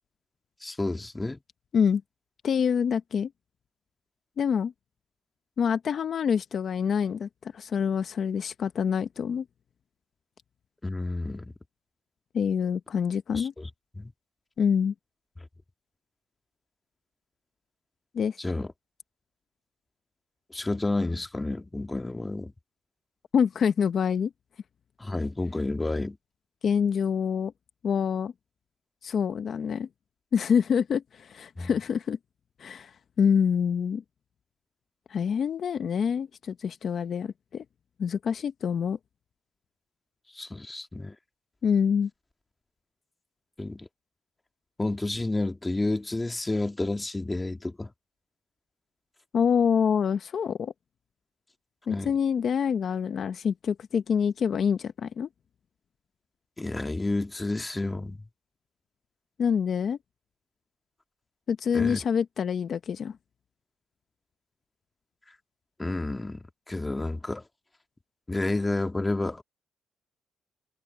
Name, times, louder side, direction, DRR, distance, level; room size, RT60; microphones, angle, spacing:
voice 1, 0.6-1.4 10.8-11.5 13.4-13.7 13.9-14.1 18.4-18.7 20.5-22.5 25.0-26.2 31.6-31.7 40.3-41.2 43.6-43.9 44.8-47.9 51.9-52.1 56.6-58.2 61.7-62.0 65.8-66.4 66.7-67.4 68.3-69.4, left 2 dB, 15° left, 2.0 m, -30 dB
voice 2, 2.4-3.3 4.4-4.7 5.6-9.4 12.3-13.5 14.6-14.9 18.1-18.4 23.3-24.3 26.6-27.5 27.8-28.3 29.0-29.9 30.3-32.2 32.6-34.0 35.1-37.6 38.0-39.0 41.6-42.1 49.3-50.7 51.9-55.3 59.4-60.0 61.5-63.2, left 7 dB, 55° left, 0.9 m, -26 dB
cardioid pair, 90°, 0 cm